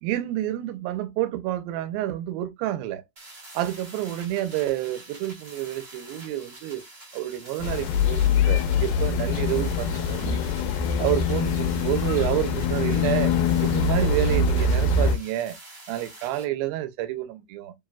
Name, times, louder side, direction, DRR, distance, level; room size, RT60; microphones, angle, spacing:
voice 1, 0.0-3.0 3.5-6.8 7.1-10.4 11.0-13.3 13.6-15.6 15.9-17.7, right 13 dB, 80° right, 2.5 m, -29 dB
sound 1, 3.2-16.4, right 2 dB, 55° right, 0.6 m, -46 dB
sound 2, 7.6-15.2, left 5 dB, 75° left, 1.9 m, -23 dB
7.0 x 2.7 x 2.3 m
omnidirectional pair, 4.2 m